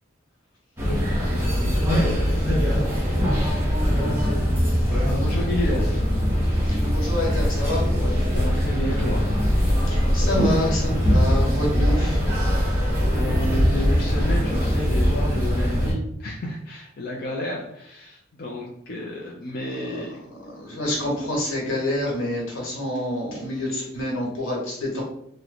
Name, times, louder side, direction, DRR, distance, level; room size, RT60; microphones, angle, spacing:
sound 1, 0.8-15.9, equal, 10° right, 0.9 m, -22 dB
voice 1, 5.0-6.1 8.3-9.3 13.1-20.2, left 1 dB, 50° left, -3 dB, 0.5 m, -31 dB
voice 2, 6.6-7.9 9.8-12.3 12.7-12.8 19.7-20.1 20.3-25.0, left 1 dB, 80° left, -2 dB, 1.3 m, -27 dB
3.0 x 2.1 x 3.9 m, 0.72 s
head